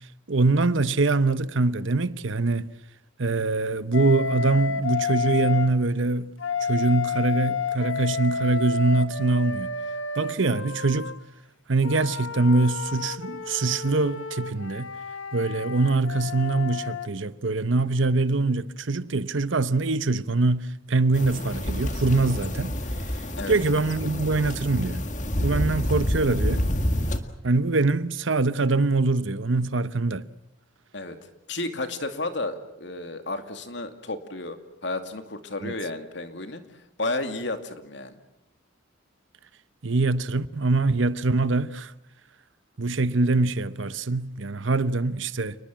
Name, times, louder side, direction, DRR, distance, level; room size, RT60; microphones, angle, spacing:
voice 1, 0.3-2.7 3.2-6.3 6.6-9.7 10.2-11.1 11.7-14.9 15.3-22.8 23.5-25.0 25.4-26.7 27.4-30.3 35.6-35.7 39.8-41.9 42.8-45.6, right 3 dB, 75° right, 0.9 m, -23 dB
Wind instrument woodwind instrument, 3.9-5.7 6.4-11.2 11.8-17.1, left 5 dB, 80° left, 1.3 m, -31 dB
sound 1, 21.1-27.2, equal, 40° left, 1.9 m, -28 dB
voice 2, 31.5-36.6 37.0-38.2, left 2 dB, 60° left, 2.5 m, -32 dB
29.5 x 20.5 x 7.6 m
head